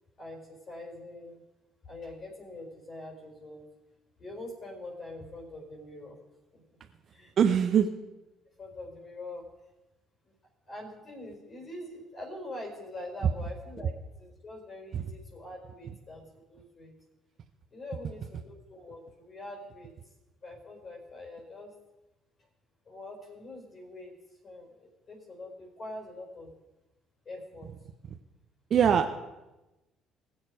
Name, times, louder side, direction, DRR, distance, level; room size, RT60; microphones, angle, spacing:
voice 1, 0.2-1.4 1.8-3.7 4.2-6.2 6.5-6.6 7.1-7.3 7.7-7.8 8.6-9.5 10.7-13.9 14.2-16.9 17.7-20.1 20.4-21.7 22.4-22.5 22.8-24.1 24.4-26.5 27.2-27.7, left 1 dB, 45° left, 1 dB, 4.5 m, -44 dB
voice 2, 7.4-7.9 14.9-15.0 28.7-29.1, right 8 dB, 55° right, 7 dB, 0.8 m, -22 dB
19.0 x 7.5 x 4.9 m, 1.0 s
hypercardioid pair, 55°, 0 cm